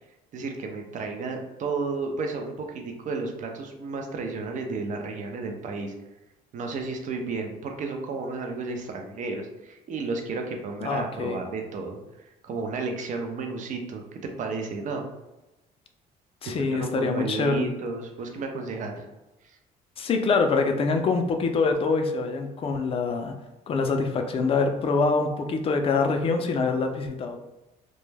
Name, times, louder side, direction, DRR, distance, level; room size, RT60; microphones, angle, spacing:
voice 1, 0.3-5.9 6.5-15.0 16.4-19.0 19.4-19.6, right 3 dB, 50° right, 3 dB, 0.5 m, -32 dB
voice 2, 10.8-11.4 16.4-17.7 20.0-23.4 23.7-27.4, left 4 dB, 35° left, 5 dB, 0.4 m, -25 dB
2.2 x 2.1 x 3.2 m, 1.0 s
cardioid pair, 110°, 17 cm